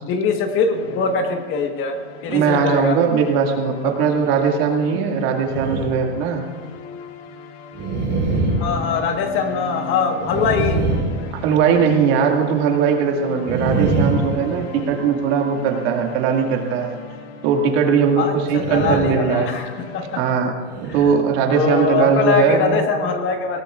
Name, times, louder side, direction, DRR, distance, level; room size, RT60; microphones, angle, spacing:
voice 1, 0.0-3.0 3.8-3.9 8.6-10.8 18.2-20.2 21.0-21.1 21.5-23.6, left 5 dB, 35° left, 5 dB, 1.5 m, -22 dB
sound 1, 0.7-20.4, left 5 dB, 55° left, 1.4 m, -38 dB
voice 2, 2.3-6.4 11.3-17.0 17.4-19.6 20.2-20.5 20.8-22.9, right 6 dB, 55° right, 2 dB, 2.2 m, -19 dB
sound 2, 5.4-6.2 6.6-6.7 7.7-9.6 10.2-11.9 13.4-15.1 18.4-19.3 19.7-19.9 20.6-21.0, right 3 dB, 30° right, 4.2 m, -24 dB
20.0 x 17.5 x 2.5 m, 1.5 s
supercardioid pair, 135°, 36 cm